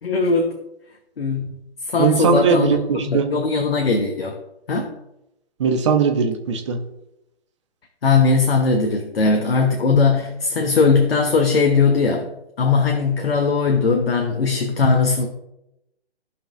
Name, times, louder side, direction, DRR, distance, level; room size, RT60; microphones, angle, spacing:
voice 1, 0.0-0.6 1.2-1.6 1.9-2.7 3.1-4.4 4.7-4.9 8.0-12.3 12.6-15.3, left 4 dB, 60° left, 3 dB, 1.3 m, -19 dB
voice 2, 2.0-3.3 5.6-6.8, right 5 dB, 25° right, 5 dB, 0.9 m, -19 dB
15.0 x 5.7 x 2.6 m, 0.85 s
figure-of-eight pair, 150°, 33 cm